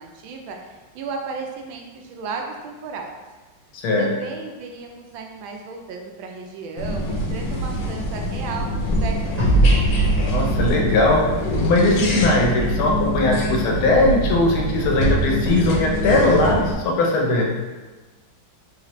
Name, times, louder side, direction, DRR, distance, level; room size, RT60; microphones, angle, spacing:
voice 1, 0.0-3.1 4.0-9.3 9.6-9.8, right 4 dB, 80° right, 2 dB, 1.3 m, -34 dB
voice 2, 3.7-4.1 10.3-11.2 11.6-17.5, left 2 dB, 85° left, -1 dB, 1.6 m, -19 dB
sound 1, 6.8-16.7, equal, 65° left, 1.3 m, -24 dB
sound 2, 9.4-12.7, right 1 dB, 35° right, 0.4 m, -22 dB
4.1 x 3.2 x 3.0 m, 1.2 s
omnidirectional pair, 2.2 m